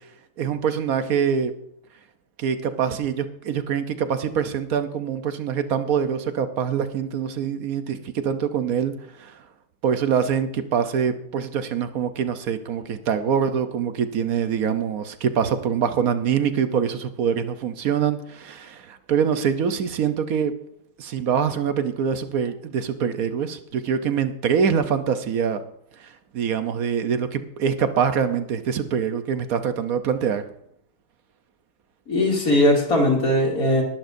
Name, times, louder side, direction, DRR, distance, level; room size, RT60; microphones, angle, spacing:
voice 1, 0.4-1.5 2.4-9.4 9.8-20.6 21.0-25.6 26.0-30.4, right 7 dB, 65° right, 9 dB, 1.2 m, -24 dB
voice 2, 32.1-33.8, left 1 dB, 60° left, -1 dB, 3.1 m, -19 dB
19.5 x 11.5 x 2.6 m, 0.73 s
omnidirectional pair, 1.7 m